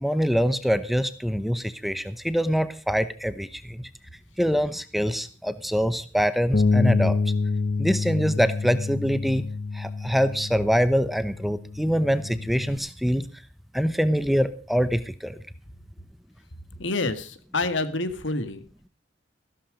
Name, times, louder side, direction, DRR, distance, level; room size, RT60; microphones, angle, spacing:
voice 1, 0.0-3.9 4.4-7.2 7.8-9.5 9.7-13.3 13.7-15.4, equal, ahead, 13 dB, 0.9 m, -24 dB
Bass guitar, 6.5-12.8, left 4 dB, 45° left, 0.8 m, -27 dB
voice 2, 16.8-18.6, left 2 dB, 85° left, 11 dB, 1.9 m, -27 dB
15.0 x 13.5 x 5.1 m, 0.38 s
head